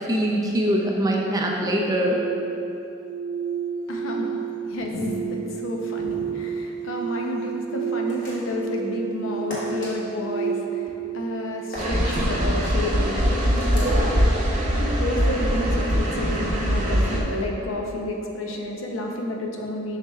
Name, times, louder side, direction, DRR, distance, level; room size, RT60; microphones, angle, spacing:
voice 1, 0.1-2.2, equal, 20° right, -1 dB, 0.4 m, -23 dB
sound 1, 1.7-12.8, right 7 dB, 90° right, 0.3 m, -31 dB
voice 2, 3.9-4.4 4.7-20.0, left 1 dB, 85° left, 1 dB, 0.7 m, -30 dB
sound 2, 8.1-8.6 9.5-9.9 11.7-12.2 13.6-14.0, equal, 40° left, 1.3 m, -37 dB
sound 3, 11.8-17.2, equal, 35° right, 0.8 m, -22 dB
7.3 x 5.7 x 2.3 m, 2.8 s
head